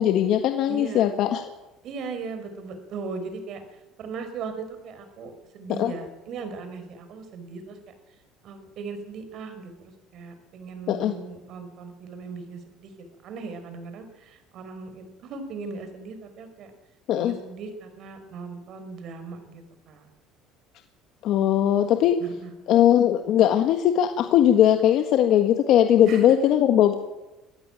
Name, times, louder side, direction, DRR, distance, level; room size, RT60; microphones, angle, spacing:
voice 1, 0.0-1.5 5.7-5.9 10.9-11.1 17.1-17.3 21.2-22.2 22.7-27.0, left 11 dB, 60° left, 6 dB, 1.6 m, -20 dB
voice 2, 0.7-1.1 1.8-3.6 4.0-7.8 8.4-12.9 13.2-16.7 17.1-20.1 22.2-22.5 26.0-26.4, right 4 dB, 55° right, 8 dB, 5.1 m, -38 dB
24.0 x 15.0 x 9.1 m, 1.0 s
cardioid pair, 130°, 0 cm